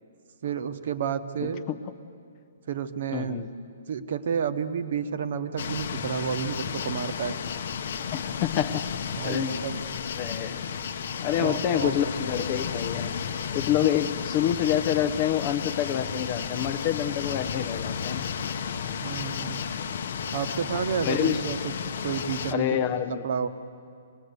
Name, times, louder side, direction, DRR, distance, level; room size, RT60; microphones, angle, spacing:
voice 1, 0.4-1.6 2.7-3.4 3.9-7.4 9.1-9.8 11.4-12.5 19.0-19.6 20.3-21.7 22.0-22.8 23.2-23.5, right 7 dB, 45° right, 10 dB, 1.0 m, -30 dB
voice 2, 1.4-1.8 3.1-3.5 8.1-8.8 9.2-9.6 10.2-10.6 11.2-13.2 13.5-18.3 21.0-21.4 22.5-23.3, left 10 dB, 20° left, 10 dB, 0.5 m, -27 dB
sound 1, 5.6-22.5, left 7 dB, 45° left, 0.8 m, -33 dB
25.5 x 19.5 x 8.1 m, 2.3 s
hypercardioid pair, 180°, 0 cm